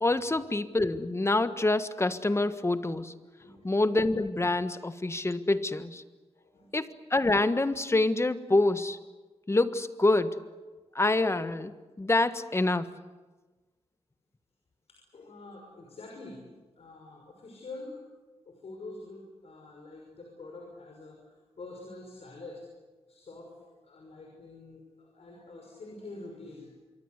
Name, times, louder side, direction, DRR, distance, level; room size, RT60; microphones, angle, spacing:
voice 1, 0.0-3.1 3.6-6.0 6.7-9.0 9.5-10.4 10.9-12.9, left 2 dB, 25° left, 11 dB, 1.4 m, -26 dB
voice 2, 3.4-3.7 6.3-6.7 14.9-16.4 16.8-18.0 18.5-22.7 23.1-23.5 23.8-26.7, left 2 dB, 65° left, 1 dB, 6.1 m, -46 dB
27.0 x 23.5 x 8.2 m, 1.2 s
cardioid pair, 75°, 11 cm